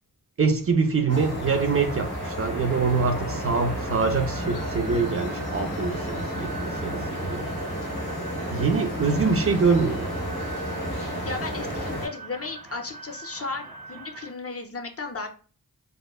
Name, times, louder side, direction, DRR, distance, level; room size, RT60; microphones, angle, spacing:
voice 1, 0.4-7.5 8.5-10.1, right 4 dB, 40° right, 0.4 m, -24 dB
sound 1, 0.6-14.3, right 4 dB, 75° right, 0.6 m, -43 dB
sound 2, 1.1-12.1, equal, 85° left, 1.2 m, -31 dB
voice 2, 11.2-15.3, left 4 dB, 40° left, 0.5 m, -35 dB
2.9 x 2.0 x 2.3 m
cardioid pair, 50°, 37 cm